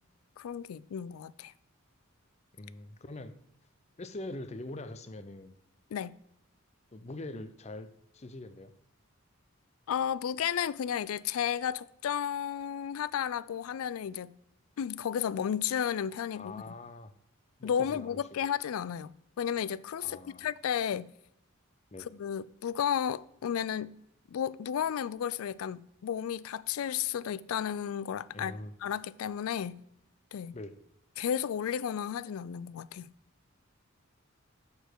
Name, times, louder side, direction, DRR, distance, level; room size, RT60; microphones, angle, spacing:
voice 1, 0.4-1.5 5.9-6.2 9.9-14.4 14.8-16.7 17.6-21.1 22.0-23.9 24.3-29.8 30.3-30.6 31.2-33.1, left 8 dB, 85° left, 0.3 m, -33 dB
voice 2, 2.5-3.3 4.0-5.5 6.9-8.7 16.3-17.1 17.6-18.5 20.0-20.5 21.9-22.1 28.3-28.7 30.5-30.8, left 2 dB, 30° left, 0.6 m, -43 dB
6.8 x 6.6 x 4.6 m
head